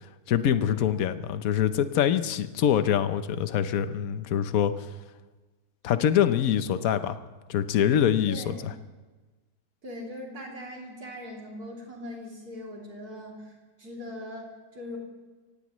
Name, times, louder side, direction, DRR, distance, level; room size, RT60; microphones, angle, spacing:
voice 1, 0.3-4.9 5.8-7.2 7.5-8.7, left 9 dB, 65° left, 11 dB, 1.2 m, -24 dB
voice 2, 8.3-8.6 9.8-13.5 13.8-15.0, left 1 dB, 75° right, -2 dB, 3.6 m, -40 dB
24.5 x 17.5 x 3.1 m, 1.3 s
omnidirectional pair, 1.7 m